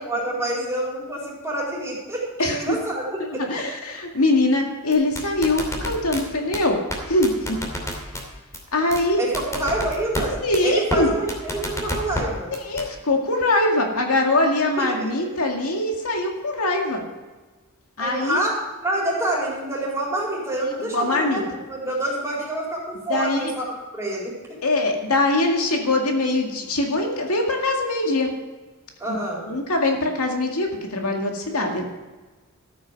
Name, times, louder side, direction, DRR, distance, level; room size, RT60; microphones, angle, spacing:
voice 1, 0.1-3.1 3.3-3.4 9.2-10.3 10.6-12.5 14.8-15.1 18.0-24.4 29.0-29.4, right 1 dB, 15° right, -5 dB, 4.2 m, -27 dB
voice 2, 2.4-2.8 3.2-6.8 7.1-7.6 8.7-9.2 10.4-11.1 12.6-17.0 18.0-18.4 20.9-21.4 23.1-23.5 24.6-28.3 29.1-29.2 29.4-31.8, left 2 dB, 80° left, 2 dB, 2.1 m, -22 dB
sound 1, 4.9-6.2 6.5-6.6 6.9-7.0 7.2-8.2 8.5-8.6 8.9-9.0 9.3-10.2 10.5-10.6 10.9-11.0 11.3-12.2 12.5-12.8, left 1 dB, 15° left, 2.7 m, -28 dB
13.5 x 9.1 x 5.3 m, 1.3 s
head